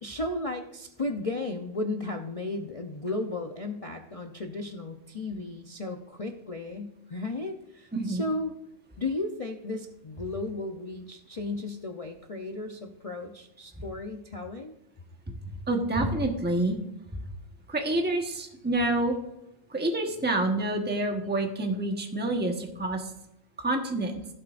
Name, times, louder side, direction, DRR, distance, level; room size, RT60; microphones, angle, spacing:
voice 1, 0.0-8.5 9.0-14.7, left 2 dB, 35° left, 3 dB, 0.6 m, -34 dB
voice 2, 15.7-16.8 17.7-19.2 19.7-23.1 23.6-24.2, right 2 dB, 10° right, 2 dB, 1.2 m, -27 dB
17.0 x 7.5 x 2.5 m, 0.85 s
omnidirectional pair, 1.5 m